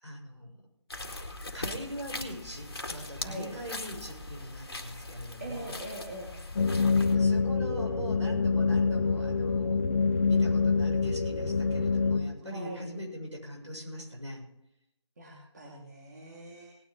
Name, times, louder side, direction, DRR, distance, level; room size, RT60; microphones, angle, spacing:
voice 1, 0.0-0.5 1.5-5.7 7.1-9.8 10.3-14.4, equal, 80° right, -1 dB, 6.8 m, -41 dB
sound 1, 0.9-7.2, left 2 dB, 55° left, 2.0 m, -40 dB
voice 2, 5.4-6.3 12.4-12.9 15.2-16.7, right 1 dB, 35° right, -2 dB, 2.8 m, -42 dB
sound 2, 6.6-12.2, left 4 dB, 30° left, 1.2 m, -26 dB
18.5 x 10.0 x 3.8 m, 0.79 s
figure-of-eight pair, 160°, 15 cm